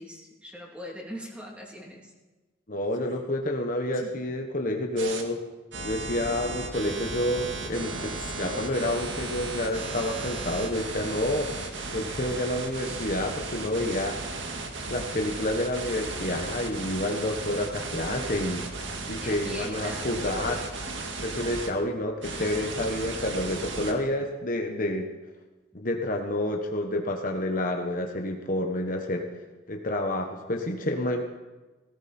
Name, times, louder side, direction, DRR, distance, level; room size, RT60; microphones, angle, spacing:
voice 1, 0.0-2.1 11.7-11.9 19.2-20.1 20.5-20.7, equal, 5° right, -2 dB, 2.9 m, -41 dB
voice 2, 2.7-5.4 5.8-11.5 11.9-14.2 14.9-18.7 19.1-20.6 21.2-25.1 25.7-29.3 29.7-31.2, left 1 dB, 45° left, 3 dB, 1.2 m, -29 dB
Male speech man speaking, 2.9-3.2 3.9-4.2 4.9-5.3 6.3-6.6 7.9-8.7, left 2 dB, 80° left, 3.4 m, -43 dB
sound 1, 5.0-5.2 5.7-21.7 22.2-23.9, right 3 dB, 65° right, 2.0 m, -35 dB
18.0 x 17.0 x 4.4 m, 1.2 s
head